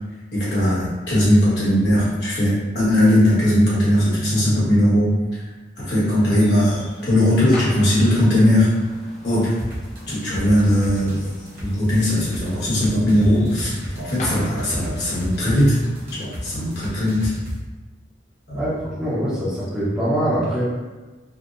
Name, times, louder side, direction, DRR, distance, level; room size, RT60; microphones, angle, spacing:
voice 1, 0.3-5.4 5.8-8.7 9.2-9.5 10.1-11.3 11.6-15.8 16.1-17.3 18.5-18.6, left 1 dB, 70° left, -9 dB, 1.3 m, -19 dB
sound 1, 6.1-17.1, left 1 dB, 40° left, 0.5 m, -37 dB
sound 2, 9.6-17.6, equal, 55° right, 0.7 m, -32 dB
voice 2, 18.5-20.6, right 1 dB, 5° right, -9 dB, 0.6 m, -23 dB
3.4 x 2.0 x 2.5 m, 1.2 s
head